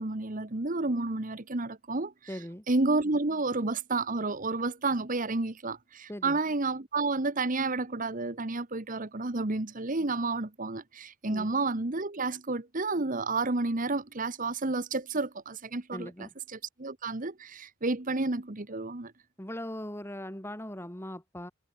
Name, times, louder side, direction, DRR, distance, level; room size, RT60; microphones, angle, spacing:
voice 1, 0.0-2.4 2.7-19.1, right 3 dB, 40° right, 1.3 m, -31 dB
voice 2, 2.3-2.7 6.1-6.4 11.3-11.5 15.9-16.3 19.4-21.5, left 1 dB, 10° left, 3.4 m, -39 dB
head